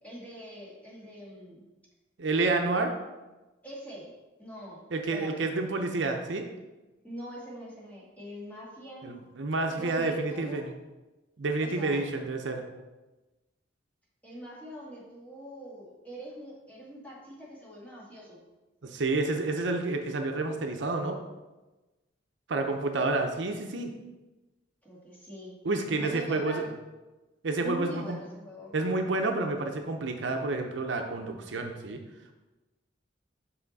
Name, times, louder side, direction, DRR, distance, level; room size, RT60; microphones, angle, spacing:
voice 1, 0.0-1.6 3.6-4.1 4.4-4.8 5.1-5.4 7.0-9.1 9.8-10.7 11.6-12.0 14.2-18.4 24.8-25.6 26.0-26.7 27.6-28.7, equal, 10° left, -6 dB, 1.8 m, -43 dB
voice 2, 2.2-2.9 4.9-6.5 9.0-10.7 11.4-12.6 18.8-21.2 22.5-23.9 25.6-26.6 27.4-28.2 28.7-32.0, right 3 dB, 70° right, 4 dB, 0.6 m, -29 dB
5.7 x 5.6 x 4.0 m, 1.1 s
head